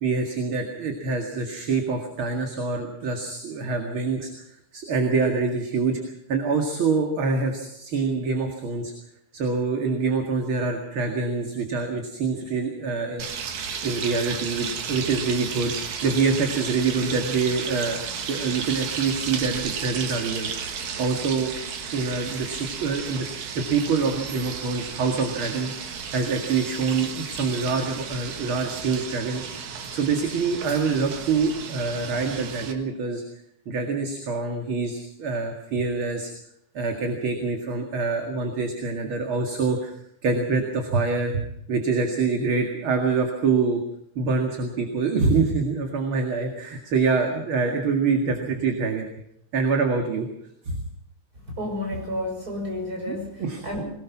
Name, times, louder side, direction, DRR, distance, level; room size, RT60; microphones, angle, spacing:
voice 1, 0.0-4.3 4.7-6.0 6.3-8.9 9.3-13.2 13.8-15.7 16.0-18.0 18.3-21.5 21.9-33.2 33.7-36.3 36.7-39.9 40.2-41.4 41.7-43.8 44.2-49.1 49.5-50.3 50.7-50.8 53.0-53.6, right 4 dB, 45° right, 3 dB, 2.7 m, -25 dB
sound 1, 13.2-32.7, right 6 dB, 75° right, 3.1 m, -33 dB
voice 2, 51.5-53.8, left 1 dB, 30° right, 1 dB, 6.5 m, -31 dB
22.0 x 19.5 x 6.0 m, 0.73 s
omnidirectional pair, 3.4 m